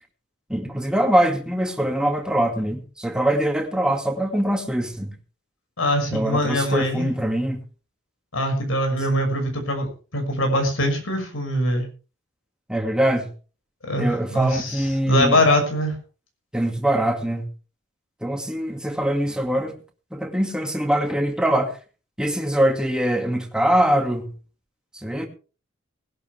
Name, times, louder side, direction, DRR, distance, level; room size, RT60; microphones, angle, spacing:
voice 1, 0.5-5.1 6.1-7.6 12.7-13.3 14.0-15.4 16.5-17.5 18.2-19.8 20.1-21.7 22.2-24.3 25.0-25.3, right 1 dB, 5° right, 4 dB, 2.2 m, -23 dB
voice 2, 5.8-7.1 8.3-11.8 13.9-16.0, left 1 dB, 85° left, 4 dB, 6.2 m, -22 dB
20.0 x 11.5 x 3.4 m, 0.37 s
head